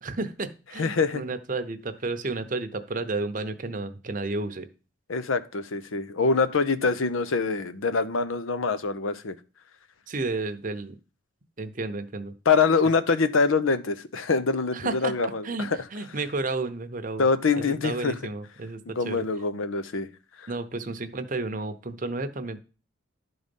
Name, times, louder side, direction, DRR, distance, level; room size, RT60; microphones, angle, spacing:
voice 1, 0.0-4.7 10.1-11.0 11.6-12.3 14.7-17.3 17.6-19.2 20.5-22.6, right 3 dB, 40° right, 0.7 m, -32 dB
voice 2, 0.8-1.2 5.1-9.4 12.5-15.8 17.2-18.1 18.9-20.1 20.4-20.5, left 4 dB, 85° left, 0.7 m, -24 dB
11.0 x 4.0 x 5.3 m
head